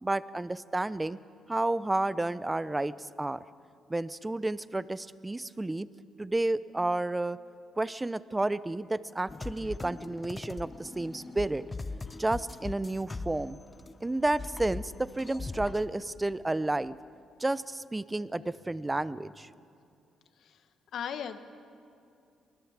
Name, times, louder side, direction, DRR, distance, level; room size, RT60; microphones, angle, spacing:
voice 1, 0.0-1.2 1.5-3.4 3.9-5.9 6.2-7.4 7.8-11.6 12.2-13.6 14.0-17.0 17.4-19.5, right 2 dB, 15° right, 16 dB, 0.7 m, -31 dB
sound 1, 9.3-13.9 14.2-15.9, left 3 dB, 25° left, 0.9 m, -40 dB
voice 2, 20.9-21.4, left 8 dB, 70° left, 9 dB, 1.4 m, -36 dB
24.0 x 20.0 x 7.4 m, 2.5 s
cardioid pair, 90°, 0 cm